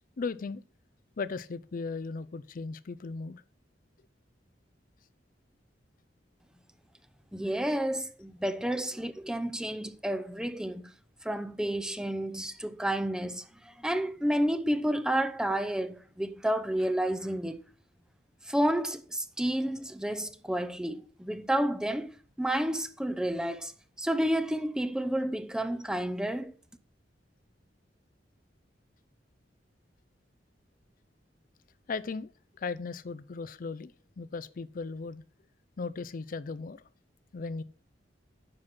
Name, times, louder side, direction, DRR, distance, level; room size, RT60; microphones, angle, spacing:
voice 1, 0.2-0.6 1.2-3.4 31.9-32.3 32.6-35.2 35.8-36.8 37.3-37.6, left 4 dB, 50° left, 0.5 m, -37 dB
voice 2, 7.3-10.9 11.2-17.6 18.5-22.1 22.4-23.7 24.0-26.5, right 1 dB, 5° right, 0.6 m, -30 dB
9.7 x 6.0 x 6.0 m
head